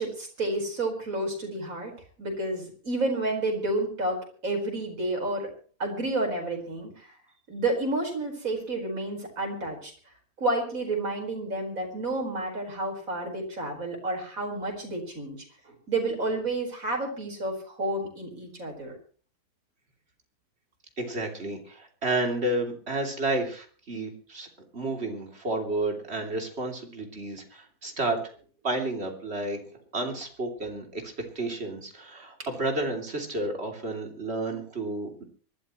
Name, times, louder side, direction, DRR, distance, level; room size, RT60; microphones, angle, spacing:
voice 1, 0.0-1.9 2.2-4.2 4.4-5.5 5.8-7.1 7.5-9.9 10.4-15.4 15.7-18.9, right 2 dB, 60° right, 2 dB, 5.2 m, -30 dB
voice 2, 21.0-24.5 24.7-28.2 28.6-29.6 29.9-35.2, right 2 dB, 40° right, 3 dB, 3.4 m, -31 dB
25.0 x 12.5 x 3.1 m, 0.42 s
omnidirectional pair, 1.6 m